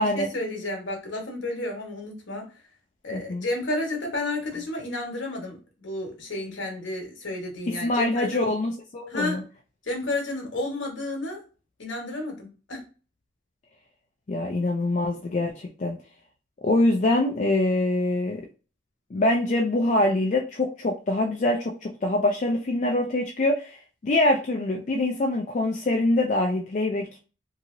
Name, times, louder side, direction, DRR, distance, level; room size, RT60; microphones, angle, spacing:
voice 1, 0.0-2.5 3.0-8.5 9.1-9.4 9.8-11.4 11.8-12.9, left 2 dB, 70° left, 0 dB, 1.1 m, -31 dB
voice 2, 3.1-3.5 7.8-9.4 14.3-16.0 16.6-18.4 19.1-27.1, left 1 dB, 40° left, 0 dB, 0.4 m, -24 dB
2.8 x 2.8 x 2.5 m, 0.34 s
head